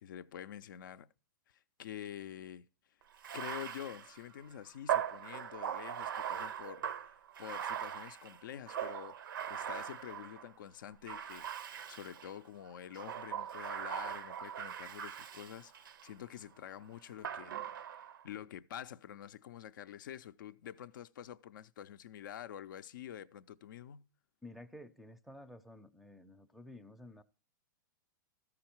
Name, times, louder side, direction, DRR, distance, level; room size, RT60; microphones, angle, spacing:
voice 1, 0.0-1.1 1.5-2.7 3.3-9.2 9.5-24.1, left 10 dB, 70° left, 0.4 m, -48 dB
Bathtub (filling or washing), 3.1-10.5 11.0-12.3 12.9-16.1 17.2-18.2, right 9 dB, 80° right, 0.6 m, -40 dB
voice 2, 24.4-27.2, left 1 dB, ahead, 0.5 m, -52 dB
13.5 x 4.8 x 4.4 m
hypercardioid pair, 125°, 11 cm